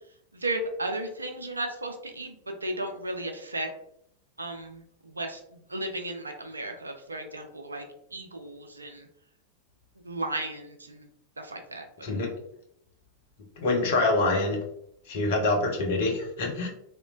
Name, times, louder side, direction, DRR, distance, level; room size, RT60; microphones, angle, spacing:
voice 1, 0.3-3.7 4.4-5.4 5.7-7.8 8.1-9.1 10.0-11.1 11.4-11.8, right 1 dB, 80° right, 5 dB, 0.4 m, -34 dB
voice 2, 13.6-14.6 15.1-16.7, left 2 dB, 55° left, 1 dB, 0.6 m, -25 dB
3.0 x 2.1 x 2.4 m, 0.74 s
figure-of-eight pair, 90°, 0 cm